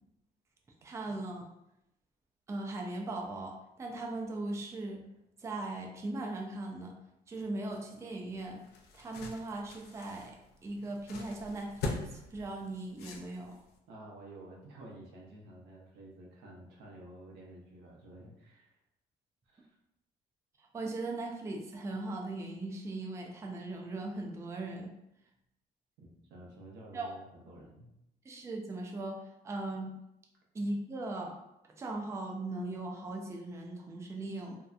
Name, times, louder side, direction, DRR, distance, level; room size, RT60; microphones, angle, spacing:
voice 1, 0.8-1.4 2.5-5.0 5.4-6.9 7.3-8.6 8.9-10.4 10.6-13.6 20.7-24.9 26.9-27.1 28.3-30.0 30.5-31.4 31.8-34.6, right 2 dB, 15° right, 0 dB, 0.4 m, -39 dB
sound 1, 8.3-13.8, left 3 dB, 70° left, 0.5 m, -42 dB
voice 2, 13.9-18.7 19.5-19.8 26.0-27.9, right 1 dB, 85° right, -2 dB, 0.7 m, -51 dB
2.7 x 2.1 x 2.4 m, 0.85 s
cardioid pair, 110°, 17 cm